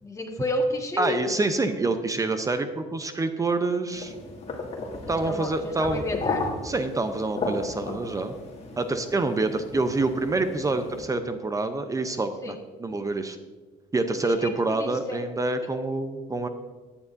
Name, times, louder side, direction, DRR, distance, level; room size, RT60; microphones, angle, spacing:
voice 1, 0.0-1.3 5.1-6.5 12.4-12.6 14.2-15.2, left 1 dB, 20° left, 2 dB, 1.6 m, -31 dB
voice 2, 1.0-4.1 5.1-6.0 6.6-8.3 8.8-13.4 13.9-16.5, right 3 dB, 20° right, 8 dB, 0.7 m, -27 dB
sound 1, 3.9-11.1, left 3 dB, 40° left, 2.1 m, -35 dB
14.0 x 9.8 x 2.6 m, 1.3 s
cardioid pair, 110°, 17 cm